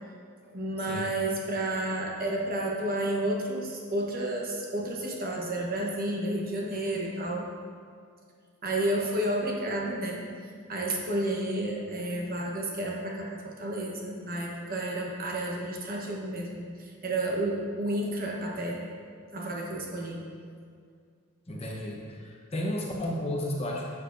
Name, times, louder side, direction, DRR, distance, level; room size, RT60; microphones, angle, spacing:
voice 1, 0.5-7.5 8.6-18.8 19.3-20.2, right 1 dB, 40° right, -2 dB, 1.1 m, -31 dB
voice 2, 21.5-23.8, left 1 dB, 25° left, -2 dB, 0.9 m, -33 dB
11.5 x 7.2 x 2.6 m, 2.1 s
head